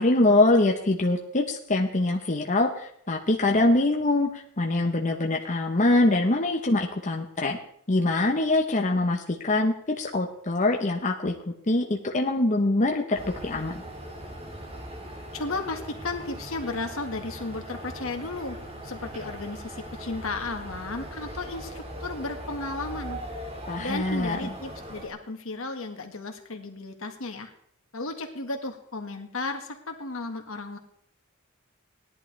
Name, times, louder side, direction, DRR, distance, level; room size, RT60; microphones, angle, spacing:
voice 1, 0.0-7.6 7.9-11.3 11.7-13.8 23.7-24.5, left 2 dB, 35° left, 1 dB, 1.0 m, -24 dB
sound 1, 13.1-25.1, right 1 dB, 30° right, 1.9 m, -39 dB
voice 2, 15.3-18.6 18.8-23.2 23.8-27.5 27.9-30.8, left 3 dB, 70° left, 4 dB, 1.7 m, -34 dB
17.5 x 11.0 x 3.3 m, 0.67 s
head